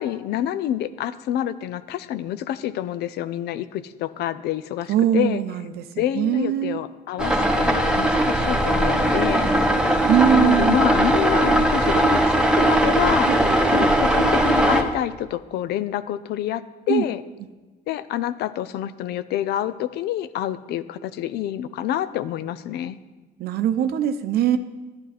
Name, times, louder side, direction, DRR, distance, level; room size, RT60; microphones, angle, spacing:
voice 1, 0.0-5.4 6.0-9.5 10.3-13.3 13.7-17.2 17.9-23.0, left 11 dB, 75° left, 14 dB, 0.6 m, -27 dB
voice 2, 4.9-6.8 10.1-10.8 13.3-13.9 16.9-17.0 23.4-24.6, right 9 dB, 70° right, 10 dB, 0.6 m, -22 dB
sound 1, 7.2-14.8, right 1 dB, 5° right, 1.1 m, -19 dB
12.0 x 10.5 x 4.2 m, 1.3 s
cardioid pair, 110°, 17 cm